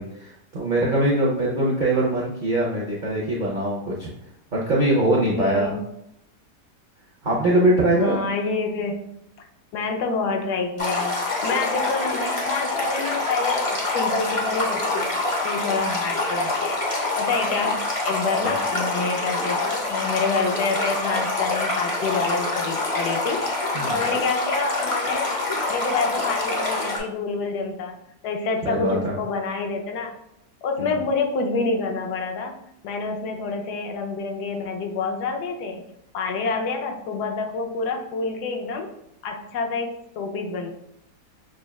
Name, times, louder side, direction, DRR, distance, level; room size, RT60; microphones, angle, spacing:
voice 1, 0.0-4.1 4.5-5.8 7.2-8.2 18.4-18.5 23.7-24.0 28.6-29.2 30.8-30.9, right 1 dB, 75° right, -4 dB, 0.4 m, -22 dB
voice 2, 5.0-5.8 7.9-9.0 9.4-9.5 9.7-11.2 11.4-15.1 15.4-16.8 17.2-23.4 23.9-25.3 25.7-27.9 28.2-30.1 30.6-32.6 32.8-35.8 36.1-38.9 39.2-40.7, left 4 dB, 80° left, 3 dB, 1.2 m, -27 dB
Stream, 10.8-27.0, left 2 dB, 45° left, 0.4 m, -26 dB
6.1 x 2.2 x 2.3 m, 0.77 s
omnidirectional pair, 1.8 m